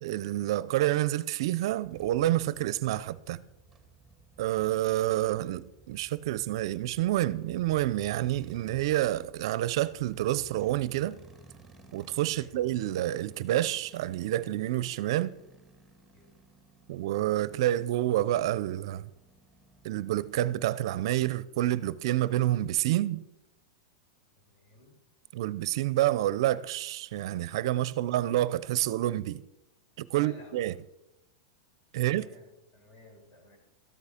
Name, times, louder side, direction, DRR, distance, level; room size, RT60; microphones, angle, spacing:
voice 1, 0.0-3.4 4.4-11.2 11.9-15.4 16.9-19.1 19.8-23.2 25.3-29.4 30.0-30.7 31.9-32.3, right 14 dB, 65° right, 0.6 m, -28 dB
sound 1, 1.8-20.7, right 3 dB, ahead, 2.1 m, -56 dB
voice 2, 24.4-25.0 30.1-30.7 32.0-33.6, left 1 dB, 35° left, 4.4 m, -54 dB
13.5 x 11.0 x 5.1 m
supercardioid pair, 145°, 3 cm